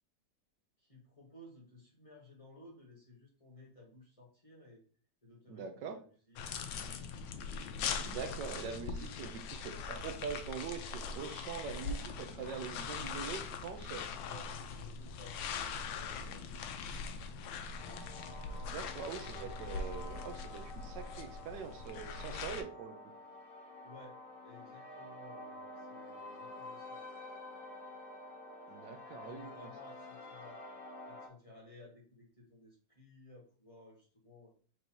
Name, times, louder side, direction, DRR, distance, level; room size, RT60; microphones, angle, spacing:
voice 1, 0.8-4.8 5.2-7.1 14.2-17.6 23.8-27.1 29.1-30.6 31.1-34.5, left 2 dB, 20° left, -3 dB, 1.1 m, -57 dB
voice 2, 5.5-6.0 8.0-14.1 18.7-23.0 28.7-29.7, right 6 dB, 80° right, 7 dB, 1.2 m, -43 dB
sound 1, 6.4-22.6, left 5 dB, 90° left, 1.3 m, -41 dB
sound 2, 17.8-31.3, left 2 dB, 65° left, 1.6 m, -49 dB
4.6 x 2.7 x 4.4 m, 0.43 s
omnidirectional pair, 2.0 m